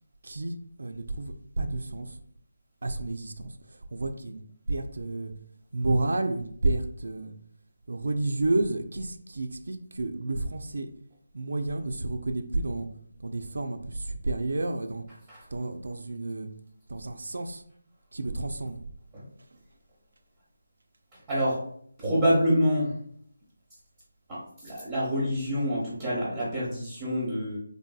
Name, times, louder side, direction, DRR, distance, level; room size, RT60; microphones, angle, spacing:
voice 1, 0.2-2.2 2.8-4.4 4.7-5.3 5.7-7.3 7.9-10.9 11.3-12.9 13.2-15.0 15.5-16.5 16.9-17.6 18.1-18.8, right 2 dB, 70° right, 0.3 m, -30 dB
voice 2, 15.1-15.4 19.1-19.3 21.3-21.6 22.0-23.0 24.3-27.6, equal, 15° right, 0.8 m, -27 dB
3.3 x 2.6 x 2.3 m
figure-of-eight pair, 165°, 0 cm